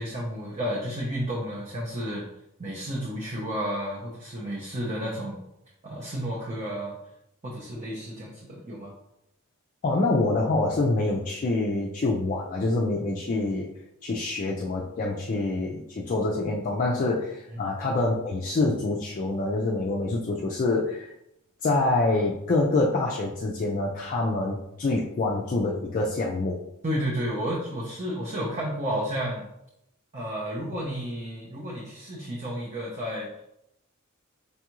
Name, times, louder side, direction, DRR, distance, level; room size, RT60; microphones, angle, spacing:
voice 1, 0.0-2.2 2.6-5.4 5.8-6.9 7.4-8.9 17.5-17.6 26.8-29.5 30.1-33.3, equal, 35° right, -4 dB, 0.6 m, -32 dB
voice 2, 9.8-13.7 14.0-21.1 21.6-26.6, left 2 dB, 40° left, -2 dB, 0.4 m, -26 dB
5.3 x 2.4 x 2.9 m, 0.83 s
head